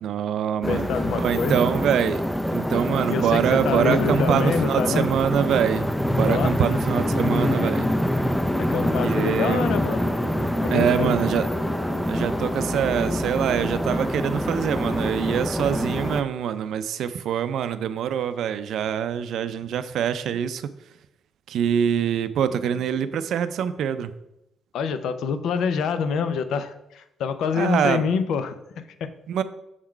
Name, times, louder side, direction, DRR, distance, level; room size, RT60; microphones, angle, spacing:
voice 1, 0.0-0.9 1.1-2.2 2.5-7.9 9.0-9.7 10.7-11.5 12.1-20.7 21.5-24.2 27.6-28.1 29.3-29.4, right 8 dB, 75° right, 12 dB, 0.4 m, -24 dB
sound 1, 0.6-16.2, equal, 5° left, 0.4 m, -25 dB
voice 2, 0.7-1.6 3.1-5.1 6.3-6.6 8.6-10.1 10.6-11.2 24.7-29.1, left 6 dB, 75° left, 11 dB, 0.5 m, -26 dB
sound 2, 6.7-13.5, left 2 dB, 45° left, 1.7 m, -40 dB
6.3 x 3.8 x 4.5 m, 0.85 s
cardioid pair, 90°, 0 cm